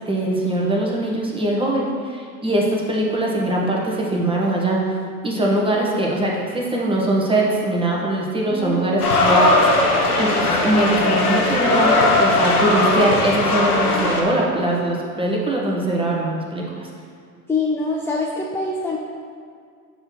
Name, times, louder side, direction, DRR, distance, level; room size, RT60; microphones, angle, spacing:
voice 1, 0.1-4.8 5.2-9.7 10.2-16.9, right 1 dB, 10° right, -3 dB, 1.4 m, -21 dB
voice 2, 8.5-8.9 17.5-19.0, left 3 dB, 5° left, -2 dB, 0.4 m, -24 dB
sound 1, 9.0-14.2, left 2 dB, 90° left, 1.1 m, -18 dB
6.7 x 3.3 x 6.1 m, 2.1 s
hypercardioid pair, 85°, 44 cm